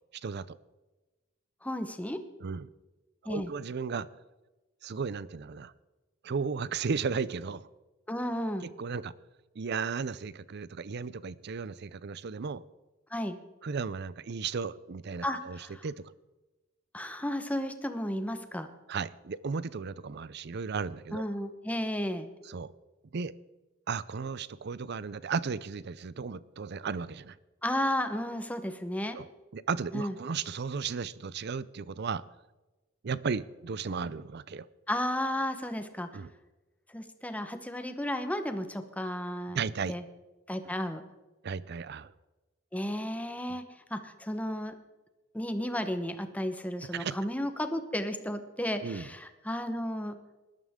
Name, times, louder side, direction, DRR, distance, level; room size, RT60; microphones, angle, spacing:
voice 1, 0.2-0.6 2.4-2.7 3.2-4.1 4.8-5.7 6.2-7.7 8.6-9.1 9.6-12.6 13.6-16.0 18.9-21.2 22.5-22.7 23.1-23.3 23.9-27.4 29.1-32.2 33.0-34.7 36.1-36.3 39.5-39.9 41.4-42.1 43.5-43.6 46.9-47.1 48.8-49.1, right 5 dB, 60° right, 18 dB, 0.5 m, -35 dB
voice 2, 1.6-2.2 3.3-3.5 8.1-8.7 13.1-13.4 15.2-15.8 16.9-18.7 21.1-22.3 27.6-29.2 29.9-30.1 34.9-36.1 36.9-39.6 39.9-40.0 40.5-41.0 42.7-43.6 43.9-44.7 45.3-50.2, equal, 10° left, 8 dB, 1.1 m, -33 dB
19.5 x 12.5 x 3.7 m, 1.1 s
head